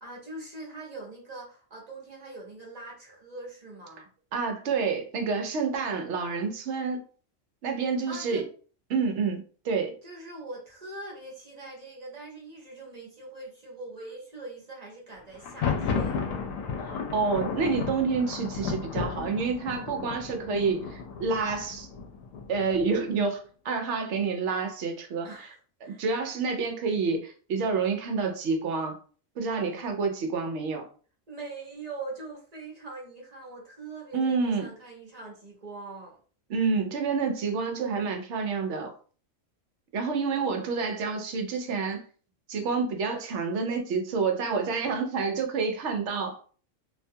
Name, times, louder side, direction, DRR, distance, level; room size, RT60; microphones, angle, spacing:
voice 1, 0.0-4.1 8.1-8.4 10.0-16.3 25.2-26.0 31.3-36.2, right 2 dB, 35° right, 0.8 m, -42 dB
voice 2, 4.3-7.0 7.6-8.4 8.9-9.9 16.9-21.9 22.5-25.5 25.8-29.0 29.4-30.8 34.1-34.7 36.5-38.9 39.9-42.0 42.5-46.4, right 4 dB, 70° right, 0.8 m, -28 dB
Thunder, 15.3-23.1, left 5 dB, 80° left, 1.0 m, -33 dB
2.5 x 2.2 x 2.6 m
omnidirectional pair, 1.4 m